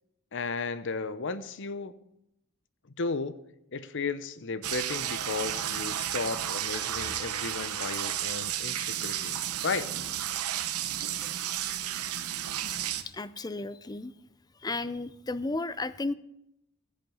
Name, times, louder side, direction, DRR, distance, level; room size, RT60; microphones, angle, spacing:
voice 1, 0.3-2.0 3.0-3.4 3.7-9.9, left 4 dB, 55° left, 14 dB, 0.7 m, -34 dB
sound 1, 4.6-13.0, right 11 dB, 85° right, 0.9 m, -32 dB
voice 2, 13.1-14.1 14.6-16.1, left 2 dB, 20° left, 15 dB, 0.4 m, -33 dB
15.5 x 7.6 x 5.5 m, 0.80 s
head